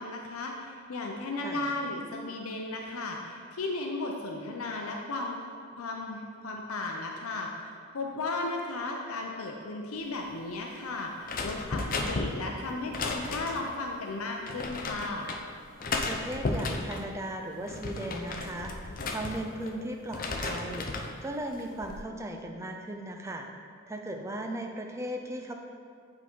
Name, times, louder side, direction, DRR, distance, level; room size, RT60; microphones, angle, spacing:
voice 1, 0.0-5.4 5.8-15.3, left 2 dB, 85° left, 1 dB, 0.6 m, -35 dB
sound 1, 11.3-13.8 14.5-15.4 15.8-17.1 17.5-19.7 20.1-21.1 21.6-22.0, left 3 dB, 40° left, 0.5 m, -34 dB
voice 2, 16.1-23.5 23.9-25.5, right 1 dB, 15° right, 3 dB, 0.4 m, -37 dB
8.2 x 3.8 x 4.5 m, 2.2 s
head